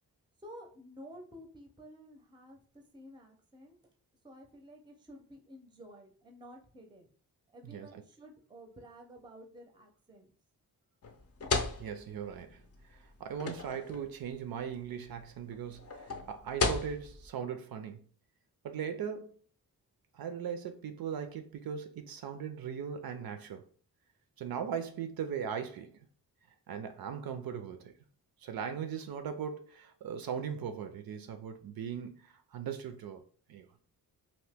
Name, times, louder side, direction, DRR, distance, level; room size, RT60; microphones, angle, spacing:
voice 1, 0.4-3.8 4.2-7.1 7.5-10.3, equal, 10° right, 0.5 m, -52 dB
sound 1, 11.0-17.3, left 4 dB, 40° left, 0.5 m, -35 dB
voice 2, 11.8-12.6 12.9-18.1 18.6-19.4 20.1-23.7 24.4-26.0 26.7-27.9 28.4-33.2 33.5-33.7, right 7 dB, 70° right, 0.5 m, -39 dB
2.8 x 2.6 x 3.4 m
wide cardioid pair, 150°, 38 cm